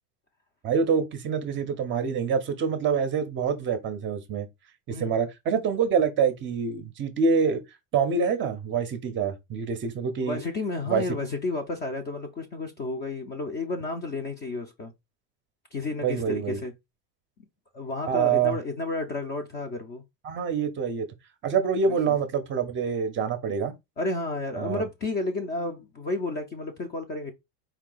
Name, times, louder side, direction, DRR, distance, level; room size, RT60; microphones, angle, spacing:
voice 1, 0.6-4.5 4.9-7.6 7.9-10.4 10.9-11.0 16.0-16.6 18.1-18.6 20.2-21.1 21.4-23.7 24.6-24.8, right 6 dB, 25° right, 0.5 m, -26 dB
voice 2, 4.9-5.2 10.2-14.9 15.7-16.7 17.7-20.0 21.9-22.0 24.0-27.3, left 2 dB, 25° left, 0.4 m, -31 dB
4.6 x 2.7 x 3.8 m
cardioid pair, 155°, 46 cm